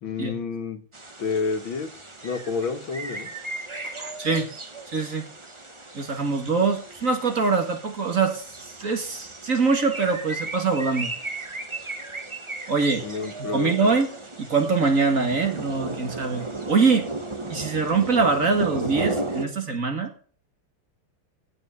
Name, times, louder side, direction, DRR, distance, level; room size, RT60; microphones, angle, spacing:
voice 1, 0.0-0.8 1.2-3.3 13.0-13.7, left 5 dB, 80° left, 7 dB, 2.4 m, -29 dB
sound 1, 0.9-19.4, right 2 dB, 15° right, 1.2 m, -35 dB
voice 2, 3.8-4.5 4.9-5.3 5.9-11.1 12.7-13.0 13.4-14.1 14.4-17.1 17.5-20.1, right 4 dB, 40° right, 6 dB, 2.2 m, -23 dB
16.5 x 6.0 x 7.1 m, 0.43 s
omnidirectional pair, 2.2 m